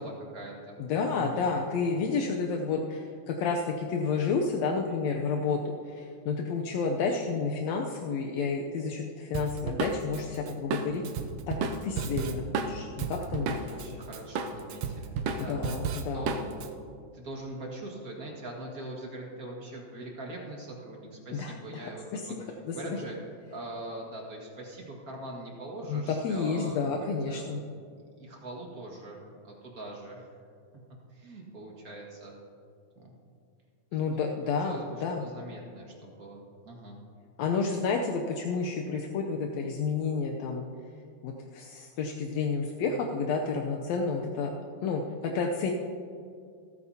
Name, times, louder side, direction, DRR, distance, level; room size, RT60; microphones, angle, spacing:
voice 1, 0.0-0.8 1.1-1.5 13.6-16.7 17.1-23.2 23.5-27.5 28.2-30.3 31.1-32.3 33.0-33.1 33.9-34.0 34.4-37.0, right 1 dB, 35° right, -2 dB, 1.6 m, -42 dB
voice 2, 0.8-5.6 5.9-11.0 11.5-13.5 13.9-14.0 15.4-16.3 21.3-21.8 22.1-23.0 25.9-27.6 33.9-35.2 37.4-40.6 41.2-44.5 44.8-45.7, left 5 dB, 75° left, 1 dB, 1.6 m, -30 dB
Drum kit, 9.3-13.9 14.1-16.7, right 5 dB, 90° right, 1.4 m, -32 dB
27.0 x 9.4 x 2.8 m, 2.3 s
omnidirectional pair, 3.8 m